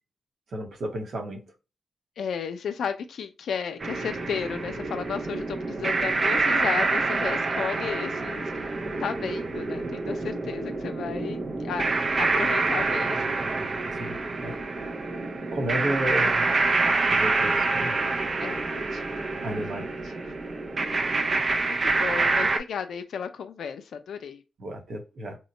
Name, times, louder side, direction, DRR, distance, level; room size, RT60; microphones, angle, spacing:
voice 1, 0.5-1.5 13.9-14.6 15.5-16.5 17.0-17.9 19.4-19.9 24.6-25.4, right 1 dB, 70° right, 1.0 m, -32 dB
voice 2, 2.2-8.7 9.0-13.3 16.2-16.3 18.4-19.0 19.6-19.8 20.9-24.4, left 7 dB, 80° left, 0.4 m, -34 dB
sound 1, 3.8-22.6, right 3 dB, 50° right, 0.5 m, -27 dB
3.0 x 2.1 x 3.8 m
cardioid pair, 60°, 0 cm